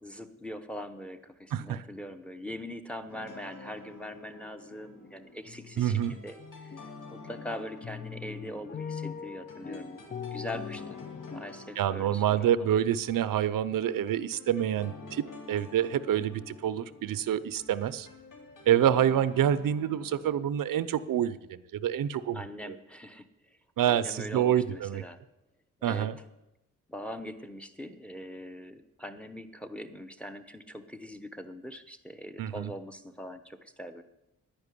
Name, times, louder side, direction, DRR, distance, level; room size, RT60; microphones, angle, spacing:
voice 1, 0.0-6.8 7.1-10.0 10.3-11.0 11.3-12.7 18.7-19.0 22.3-23.6 23.8-25.2 25.8-26.1 26.9-34.0, equal, 5° left, 10 dB, 0.8 m, -42 dB
voice 2, 1.5-1.8 5.8-6.1 11.8-18.1 18.7-22.4 22.7-22.8 23.8-25.0 25.8-26.2 32.4-32.7, right 10 dB, 80° right, 16 dB, 0.8 m, -27 dB
sound 1, 3.1-20.2, left 3 dB, 70° left, 3.3 m, -50 dB
sound 2, 5.0-5.2 5.5-6.8 7.2-11.7, left 7 dB, 25° left, 0.5 m, -41 dB
10.5 x 10.5 x 9.9 m, 0.92 s
wide cardioid pair, 165°, 33 cm